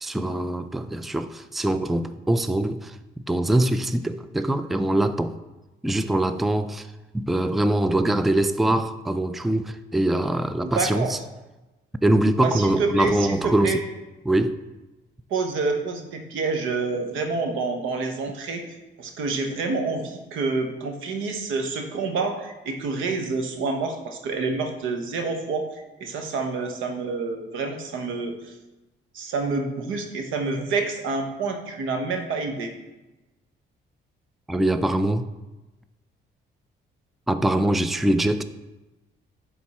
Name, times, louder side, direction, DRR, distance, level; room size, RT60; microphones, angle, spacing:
voice 1, 0.0-3.0 3.3-5.3 5.8-6.9 7.1-11.2 12.0-13.8 14.3-14.6 34.5-35.3 37.3-38.4, right 1 dB, ahead, 0.3 m, -23 dB
voice 2, 10.6-11.1 12.4-13.8 15.3-18.6 19.0-28.5 29.1-32.7, right 4 dB, 85° right, 1.1 m, -28 dB
10.5 x 3.8 x 4.2 m
cardioid pair, 90°, 20 cm